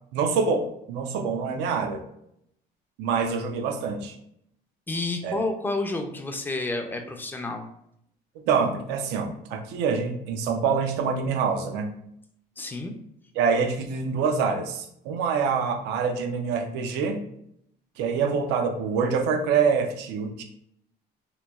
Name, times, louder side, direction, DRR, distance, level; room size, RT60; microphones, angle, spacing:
voice 1, 0.1-2.0 3.0-4.2 5.2-5.5 8.4-11.9 13.4-17.2 18.0-20.4, right 5 dB, 85° right, 5 dB, 0.4 m, -26 dB
voice 2, 4.9-7.7 12.6-12.9, left 2 dB, 10° left, 4 dB, 0.3 m, -30 dB
3.0 x 2.2 x 2.2 m, 0.73 s
cardioid pair, 110°, 17 cm